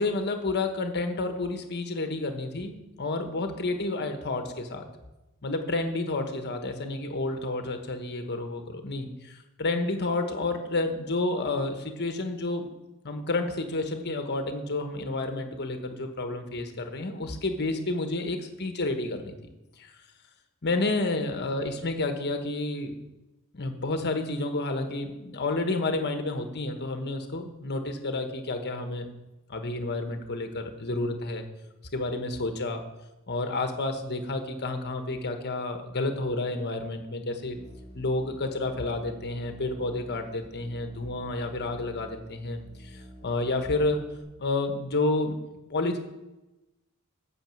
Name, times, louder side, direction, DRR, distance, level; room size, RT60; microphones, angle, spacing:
voice 1, 0.0-4.9 5.4-12.7 13.0-19.4 19.8-19.9 20.6-22.9 23.5-29.1 29.5-31.5 31.9-32.8 33.3-37.6 37.9-44.0 44.4-45.4 45.7-46.0, left 2 dB, 50° left, 6 dB, 1.3 m, -30 dB
Musical instrument, 37.5-44.2, equal, 65° right, 3.7 m, -49 dB
9.0 x 6.3 x 7.7 m, 0.99 s
head